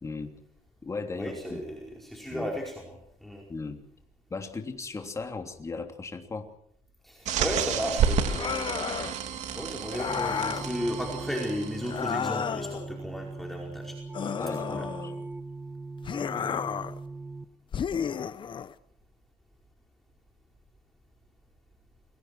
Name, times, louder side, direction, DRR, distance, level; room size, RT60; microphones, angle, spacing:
voice 1, 0.0-0.3 0.8-1.6 2.3-2.5 3.5-3.8 4.3-6.5 14.4-15.1, left 4 dB, 25° left, 4 dB, 3.2 m, -37 dB
voice 2, 1.2-3.5 7.0-14.0 14.7-14.9, equal, ahead, -1 dB, 4.8 m, -35 dB
sound 1, 7.2-12.1, right 7 dB, 80° right, 3.4 m, -30 dB
sound 2, 8.3-9.2 9.9-10.7 11.8-12.9 14.1-15.3 16.0-17.0 17.7-18.7, left 7 dB, 45° left, 1.1 m, -32 dB
sound 3, 10.1-17.5, right 3 dB, 20° right, 1.5 m, -40 dB
29.5 x 22.5 x 4.7 m, 0.69 s
cardioid pair, 125°, 12 cm